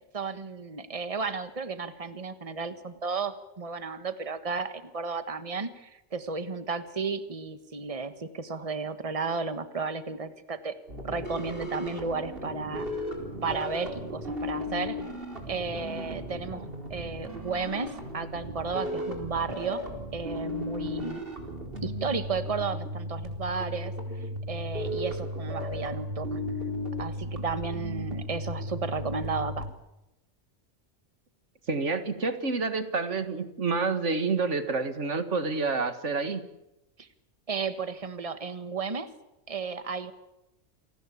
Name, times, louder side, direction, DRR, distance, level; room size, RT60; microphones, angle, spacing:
voice 1, 0.0-10.7 11.0-12.9 13.4-15.0 15.5-19.8 20.1-21.2 21.8-23.9 24.5-26.4 27.0-29.7 37.0-37.1 37.5-39.1 39.5-40.1, right 4 dB, 30° right, 11 dB, 1.6 m, -33 dB
sound 1, 10.9-29.7, equal, 50° right, 4.6 m, -35 dB
voice 2, 31.7-36.4, right 4 dB, 85° right, 10 dB, 2.1 m, -28 dB
28.0 x 18.5 x 8.5 m, 0.93 s
omnidirectional pair, 1.2 m